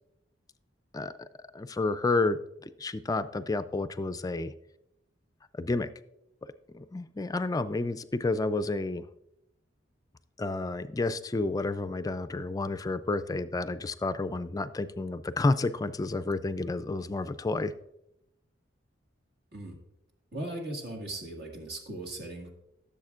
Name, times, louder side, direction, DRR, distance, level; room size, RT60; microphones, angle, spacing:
voice 1, 0.9-1.3 1.5-4.5 5.5-5.9 6.7-9.1 10.4-17.7, left 3 dB, 20° left, 12 dB, 0.3 m, -30 dB
voice 2, 20.3-22.5, right 1 dB, 60° right, 1 dB, 1.8 m, -38 dB
14.5 x 7.1 x 2.4 m, 0.84 s
head